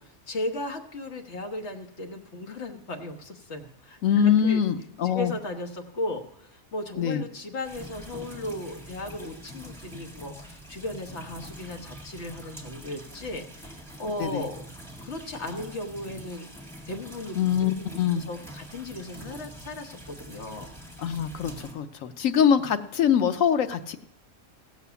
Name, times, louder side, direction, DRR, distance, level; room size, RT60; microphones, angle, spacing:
voice 1, 0.3-4.6 5.1-14.6 15.0-16.5 16.9-17.4 17.8-20.7, left 1 dB, 60° left, 4 dB, 1.4 m, -36 dB
voice 2, 4.0-5.3 7.0-7.2 14.2-14.5 17.4-18.2 21.0-24.0, left 8 dB, 85° left, 10 dB, 1.1 m, -23 dB
sound 1, 7.6-21.7, equal, ahead, 1.9 m, -45 dB
16.0 x 7.2 x 6.9 m, 0.79 s
omnidirectional pair, 1.4 m